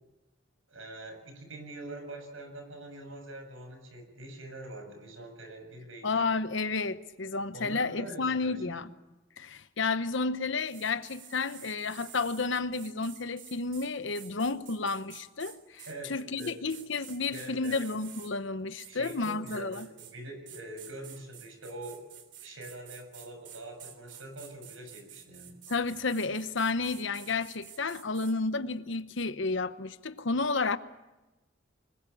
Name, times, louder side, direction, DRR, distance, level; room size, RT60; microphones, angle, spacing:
voice 1, 0.7-6.2 7.5-8.8 15.9-16.1 16.4-16.6 17.3-17.9 18.9-22.1 22.4-25.6, right 1 dB, 80° right, 7.3 m, -44 dB
voice 2, 6.0-8.9 9.4-19.9 25.7-30.8, left 3 dB, 70° left, 0.9 m, -31 dB
sound 1, 10.6-18.3 18.8-20.2 20.5-28.3, right 10 dB, 60° right, 3.4 m, -50 dB
25.0 x 21.5 x 8.5 m
head